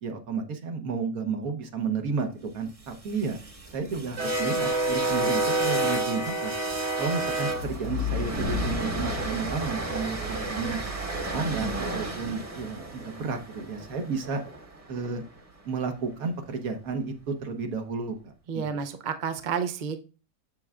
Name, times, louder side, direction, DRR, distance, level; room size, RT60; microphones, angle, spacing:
voice 1, 0.0-3.4 3.7-6.5 6.9-10.8 11.3-14.4 14.9-15.2 15.6-18.8, right 5 dB, 70° right, 6 dB, 1.5 m, -32 dB
sound 1, 2.9-15.1, right 2 dB, 25° right, 1.0 m, -30 dB
sound 2, 7.5-10.2, left 15 dB, 60° left, 1.4 m, -34 dB
voice 2, 18.5-20.0, right 6 dB, 50° right, 7 dB, 0.5 m, -30 dB
7.6 x 6.9 x 2.4 m, 0.34 s
omnidirectional pair, 1.6 m